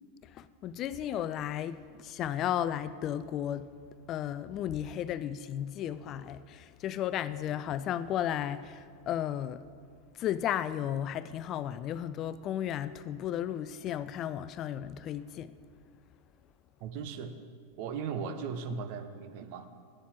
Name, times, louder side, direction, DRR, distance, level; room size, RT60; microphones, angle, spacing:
voice 1, 0.2-3.8 4.1-9.7 10.1-15.6, left 10 dB, 40° left, 0.4 m, -34 dB
voice 2, 16.8-17.4 17.8-19.7, right 6 dB, 55° right, 0.9 m, -37 dB
8.9 x 7.1 x 7.6 m
hypercardioid pair, 95°, 0 cm